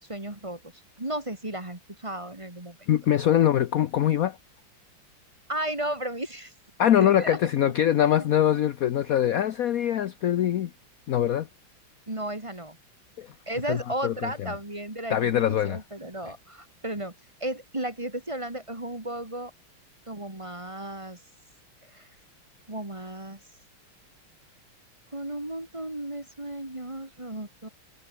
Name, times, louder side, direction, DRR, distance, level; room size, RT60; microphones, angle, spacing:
voice 1, 0.1-0.6 1.0-2.8 5.5-6.5 7.0-7.4 8.0-8.2 12.1-12.8 13.5-15.3 15.6-17.1 17.4-19.5 20.1-21.2 21.9-22.1 22.7-23.4 25.1-27.7, right 1 dB, 15° right, 2.4 m, -34 dB
voice 2, 2.9-4.4 6.8-10.7 11.1-11.5 13.2-13.3 13.7-14.5 15.1-15.8, left 11 dB, 70° left, 0.8 m, -23 dB
omnidirectional pair, 2.4 m